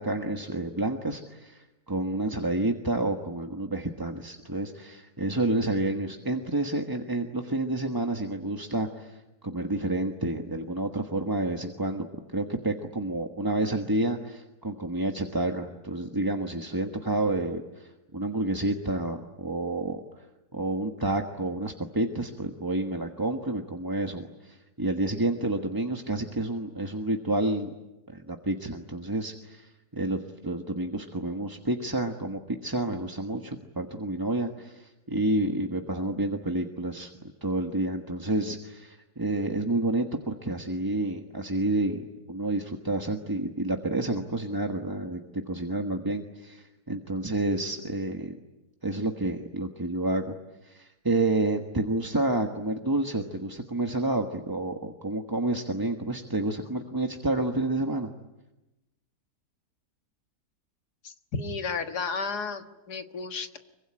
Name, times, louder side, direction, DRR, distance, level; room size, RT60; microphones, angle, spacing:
voice 1, 0.0-12.1 12.3-20.3 20.5-27.7 28.1-37.1 37.4-48.4 48.8-50.3 50.6-58.1, right 2 dB, 15° right, 3 dB, 1.2 m, -29 dB
voice 2, 61.0-63.6, left 4 dB, 85° left, 7 dB, 2.2 m, -33 dB
25.0 x 24.0 x 9.9 m, 1.0 s
omnidirectional pair, 1.7 m